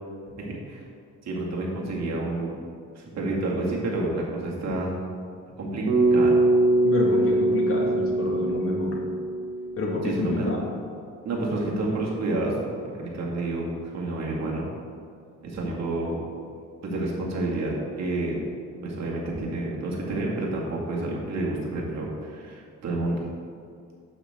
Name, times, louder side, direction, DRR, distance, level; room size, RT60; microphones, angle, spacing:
voice 1, 0.4-0.8 1.2-2.5 2.9-4.9 5.6-5.8 6.1-6.4 10.0-10.5 11.2-12.5 13.0-14.6 15.4-16.1 16.8-18.4 18.8-23.2, right 2 dB, 60° right, -3 dB, 2.2 m, -29 dB
Bass guitar, 5.9-10.2, right 2 dB, 75° right, 2.0 m, -22 dB
voice 2, 6.8-9.0 9.8-10.6, left 2 dB, 45° left, -1 dB, 1.9 m, -28 dB
9.0 x 7.9 x 3.7 m, 2.3 s
cardioid pair, 90°, 30 cm